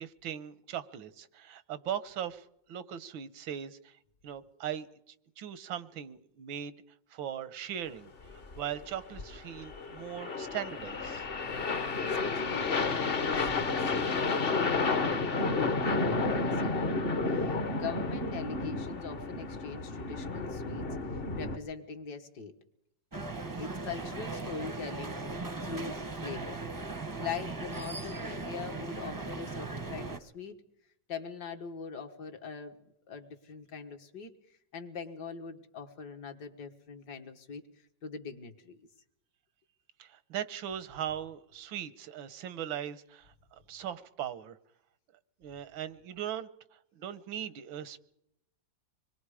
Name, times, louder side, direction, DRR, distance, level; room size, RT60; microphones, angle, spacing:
voice 1, 0.0-3.9 4.2-6.7 7.1-8.1 8.6-11.2 40.0-44.6 45.4-48.0, right 10 dB, 90° right, 15 dB, 1.8 m, -39 dB
sound 1, 8.2-21.6, left 3 dB, 35° left, 1.1 m, -31 dB
voice 2, 12.2-13.7 14.1-17.0 17.3-20.9 21.1-22.5 23.6-26.6 27.2-30.6 31.1-32.8 33.1-37.7 38.0-38.8, left 5 dB, 60° left, 6 dB, 2.0 m, -42 dB
sound 2, 23.1-30.2, right 3 dB, 20° right, 0.6 m, -38 dB
26.0 x 21.5 x 4.9 m, 0.78 s
omnidirectional pair, 2.1 m